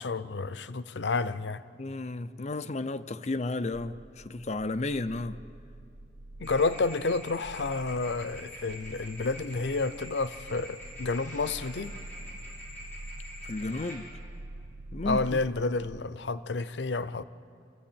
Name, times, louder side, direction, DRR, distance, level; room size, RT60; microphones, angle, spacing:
voice 1, 0.0-1.6 6.4-11.9 15.0-17.2, left 3 dB, 90° left, 0.7 m, -30 dB
voice 2, 1.8-5.4 13.4-14.0 14.9-15.4, left 2 dB, 40° left, 0.5 m, -33 dB
sound 1, 3.7-16.0, right 2 dB, 50° right, 0.6 m, -46 dB
sound 2, 6.4-14.0, left 1 dB, 10° left, 6.6 m, -46 dB
28.0 x 15.5 x 8.7 m
head